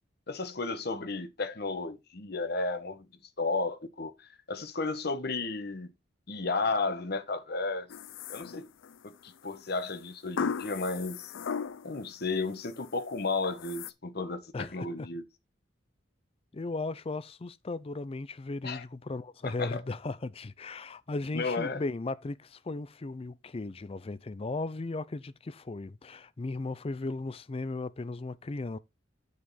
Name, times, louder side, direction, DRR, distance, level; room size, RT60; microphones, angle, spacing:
voice 1, 0.3-3.1 3.4-5.9 6.3-7.9 8.3-8.7 9.0-11.3 11.8-15.2 18.6-18.8 19.4-19.8 21.3-21.8, left 3 dB, 55° left, 1.1 m, -33 dB
sound 1, 7.9-9.0 10.4-12.1 12.5-12.9 13.4-13.9, left 6 dB, 85° left, 0.4 m, -36 dB
voice 2, 14.5-15.1 16.5-28.8, left 3 dB, 30° left, 0.4 m, -36 dB
9.2 x 5.0 x 4.1 m
head